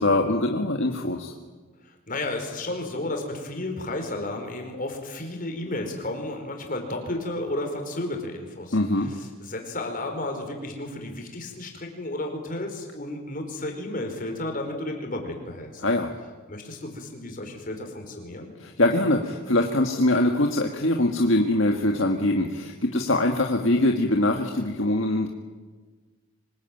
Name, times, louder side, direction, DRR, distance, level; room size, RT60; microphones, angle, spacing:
voice 1, 0.0-1.3 8.7-9.1 15.8-16.1 18.6-25.3, left 1 dB, 60° left, 2 dB, 1.8 m, -23 dB
voice 2, 1.8-15.8 16.5-18.5, left 1 dB, 40° left, 3 dB, 4.8 m, -33 dB
25.5 x 20.5 x 9.2 m, 1.4 s
head